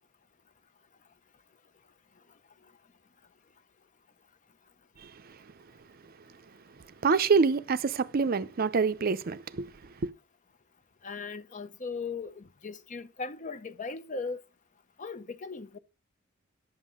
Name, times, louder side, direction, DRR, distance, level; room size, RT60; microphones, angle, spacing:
voice 1, 7.0-9.7 10.0-10.1, right 5 dB, 45° right, 0.5 m, -26 dB
voice 2, 11.0-14.4 15.0-15.8, left 4 dB, 35° left, 0.6 m, -38 dB
11.0 x 7.3 x 3.6 m
head